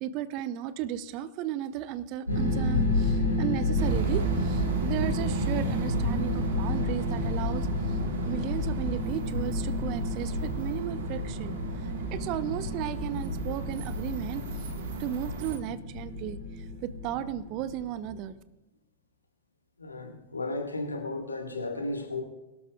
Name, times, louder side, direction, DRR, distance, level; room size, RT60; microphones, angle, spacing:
voice 1, 0.0-8.0 8.3-11.6 12.1-14.6 15.0-18.4, right 11 dB, 40° right, 15 dB, 0.6 m, -35 dB
sound 1, 2.3-18.1, left 2 dB, 90° right, 4.1 m, -31 dB
sound 2, 3.8-15.6, right 6 dB, 55° right, 1.6 m, -36 dB
voice 2, 19.8-22.2, left 2 dB, 80° left, 3 dB, 1.7 m, -34 dB
22.0 x 12.5 x 2.4 m, 1.0 s
figure-of-eight pair, 90°, 0 cm